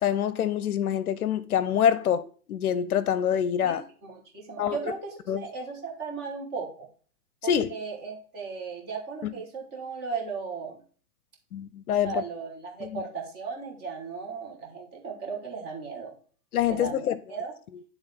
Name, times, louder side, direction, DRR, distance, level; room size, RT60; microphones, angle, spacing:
voice 1, 0.0-2.2 2.5-3.8 4.6-4.8 5.3-5.5 7.4-7.7 9.2-9.3 11.5-12.2 12.8-13.0 16.5-17.2, left 9 dB, 70° left, 0.7 m, -25 dB
voice 2, 3.6-6.9 7.4-10.8 12.0-16.1 16.7-17.5, right 5 dB, 20° right, 1.4 m, -36 dB
10.5 x 3.6 x 3.5 m
hypercardioid pair, 145°, 46 cm